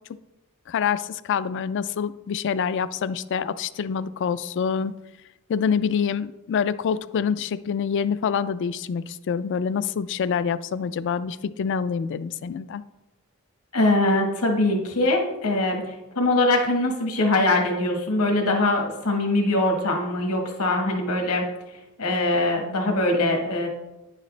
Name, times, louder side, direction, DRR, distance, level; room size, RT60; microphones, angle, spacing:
voice 1, 0.7-4.9 5.5-12.8, left 6 dB, 55° left, 15 dB, 0.3 m, -26 dB
voice 2, 13.7-21.5 22.0-23.7, left 2 dB, 80° left, 2 dB, 1.4 m, -22 dB
9.5 x 6.5 x 3.3 m, 1.0 s
head